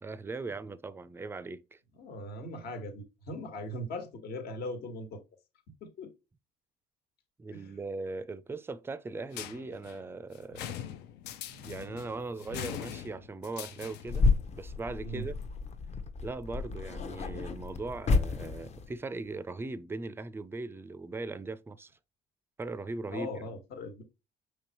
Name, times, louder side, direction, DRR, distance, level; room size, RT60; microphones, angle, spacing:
voice 1, 0.0-1.8 7.4-10.8 11.5-14.3 14.5-15.4 16.2-21.9 22.6-23.4, right 3 dB, 15° right, 0.4 m, -39 dB
voice 2, 1.9-5.2 5.8-6.1 7.5-7.7 15.0-15.3 23.1-24.0, left 1 dB, 70° left, 1.4 m, -39 dB
sound 1, 9.3-14.3, left 10 dB, 85° left, 0.6 m, -42 dB
sound 2, 14.1-19.0, left 4 dB, 40° left, 0.7 m, -31 dB
5.2 x 3.3 x 3.0 m
cardioid pair, 110°, 17 cm